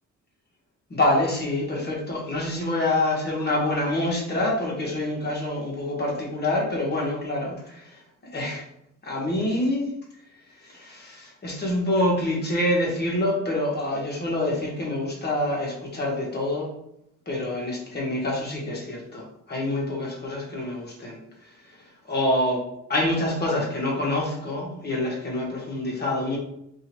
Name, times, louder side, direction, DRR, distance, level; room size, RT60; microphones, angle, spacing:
voice 1, 0.9-8.0 8.3-8.6 9.0-9.9 10.6-16.7 17.3-21.2 21.5-21.6 22.1-22.6 22.9-26.4, left 1 dB, 35° left, -3 dB, 1.4 m, -26 dB
2.8 x 2.8 x 4.4 m, 0.78 s
cardioid pair, 90°, 30 cm